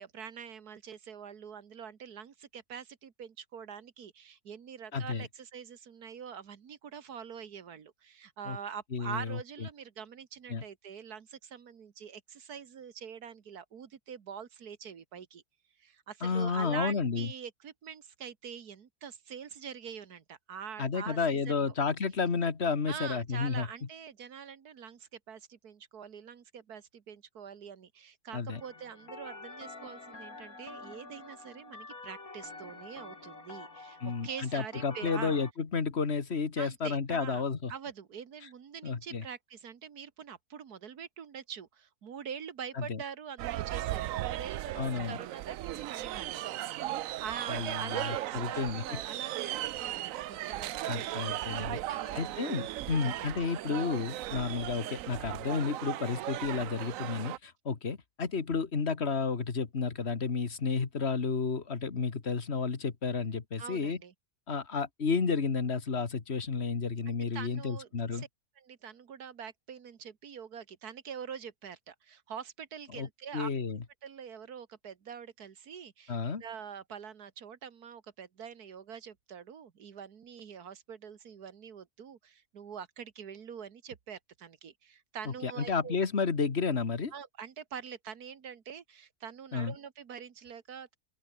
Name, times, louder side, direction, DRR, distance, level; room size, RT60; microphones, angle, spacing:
voice 1, 0.0-15.4 15.8-21.7 22.9-35.4 36.6-37.4 37.7-52.2 52.7-53.3 63.6-64.1 67.1-68.3 68.6-73.5 74.0-86.0 87.1-91.0, right 7 dB, 85° right, 2.0 m, -45 dB
voice 2, 4.9-5.3 8.5-8.6 8.9-9.4 10.5-10.6 16.2-17.3 20.8-23.7 28.3-28.6 34.0-37.7 38.8-39.2 42.8-43.0 44.8-45.2 47.5-49.0 50.9-51.8 52.2-64.0 64.5-68.2 72.9-73.1 73.3-73.8 76.1-76.4 85.3-87.1 89.5-89.8, left 5 dB, 45° left, 1.9 m, -31 dB
sound 1, 28.5-35.5, left 3 dB, 70° left, 4.2 m, -47 dB
sound 2, 43.4-57.4, right 14 dB, 70° right, 0.9 m, -37 dB
open air
omnidirectional pair, 1.6 m